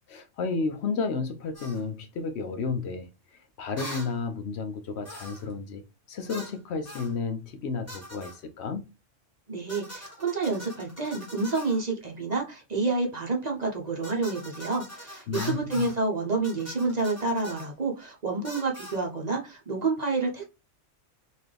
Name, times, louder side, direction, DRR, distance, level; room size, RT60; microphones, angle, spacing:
voice 1, 0.1-5.8 6.1-8.9 15.3-15.9, left 4 dB, 70° left, 0.8 m, -32 dB
sound 1, 1.5-1.8 3.8-4.1 5.0-5.5 6.3-6.6 6.9-7.1 7.9-8.4 9.7-11.8 14.0-16.0 16.4-17.7 18.4-19.0, equal, 10° left, 1.3 m, -42 dB
voice 2, 9.5-20.4, right 3 dB, 40° right, 0.8 m, -29 dB
4.0 x 2.6 x 3.2 m
omnidirectional pair, 1.3 m